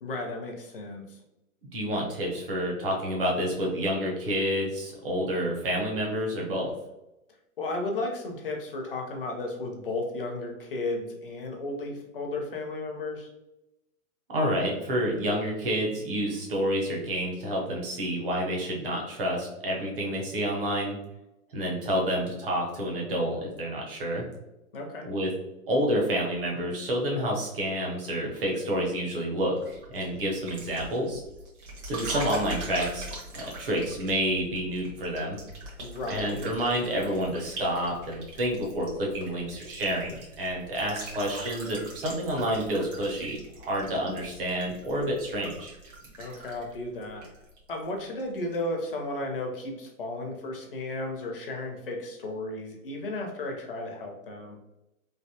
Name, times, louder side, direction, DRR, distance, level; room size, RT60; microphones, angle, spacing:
voice 1, 0.0-1.2 7.6-13.3 24.7-25.1 35.8-36.4 46.2-47.3 47.7-54.6, left 2 dB, 40° left, 1 dB, 0.6 m, -34 dB
voice 2, 1.7-6.7 14.3-21.0 21.5-24.2 25.1-25.3 25.7-31.2 31.8-33.1 33.3-35.4 36.1-45.7, equal, 40° right, -1 dB, 0.8 m, -29 dB
sound 1, 29.6-47.9 48.2-48.6, right 2 dB, 55° right, 1.2 m, -42 dB
3.3 x 2.5 x 2.7 m, 0.93 s
hypercardioid pair, 175°, 43 cm